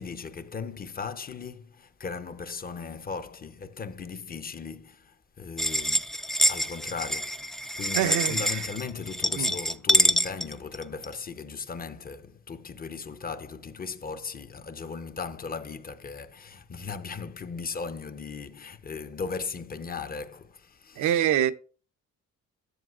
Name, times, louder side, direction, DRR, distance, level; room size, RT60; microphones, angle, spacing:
voice 1, 0.0-21.2, left 5 dB, 30° left, 0.7 m, -37 dB
sound 1, 5.6-11.1, equal, ahead, 0.3 m, -26 dB
voice 2, 7.9-8.4 9.4-9.5 21.0-21.5, right 11 dB, 75° right, 0.6 m, -24 dB
11.0 x 7.1 x 2.4 m
cardioid pair, 90°, 30 cm